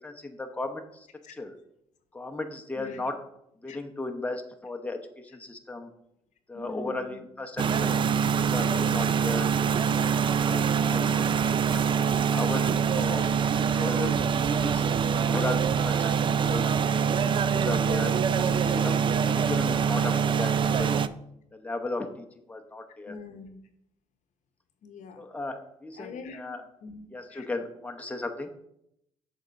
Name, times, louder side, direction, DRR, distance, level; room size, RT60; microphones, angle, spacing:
voice 1, 0.0-1.1 1.4-1.5 2.1-3.1 3.6-5.0 5.3-5.9 6.5-8.0 8.3-9.5 10.0-11.0 11.7-13.3 13.7-14.1 14.5-14.9 15.1-16.7 17.5-18.1 18.6-18.9 19.2-21.0 21.5-23.2 25.2-26.6 27.1-28.5, left 2 dB, 10° left, 4 dB, 0.8 m, -35 dB
voice 2, 6.5-7.2 18.3-18.8 23.1-23.6 24.8-25.2 26.0-26.4 26.8-27.5, left 4 dB, 70° left, 7 dB, 0.8 m, -44 dB
sound 1, 7.6-21.1, right 7 dB, 40° right, 0.3 m, -24 dB
6.5 x 3.7 x 5.3 m, 0.77 s
supercardioid pair, 70°, 13 cm